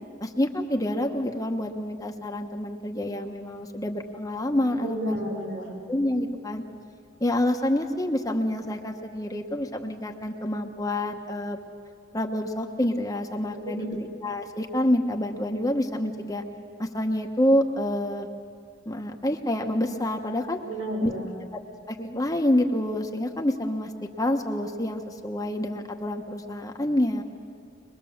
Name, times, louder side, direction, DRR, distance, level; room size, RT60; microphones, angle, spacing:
voice 1, 0.2-5.4 5.9-6.6 7.2-11.6 12.1-16.4 16.8-18.3 18.9-20.6 21.0-21.1 21.5-21.6 21.9-23.9 24.2-27.2, left 1 dB, 20° left, 3 dB, 1.0 m, -27 dB
voice 2, 4.8-5.8 13.5-14.0 20.6-21.4, right 1 dB, 75° right, -2 dB, 6.8 m, -33 dB
22.5 x 22.5 x 7.2 m, 2.2 s
head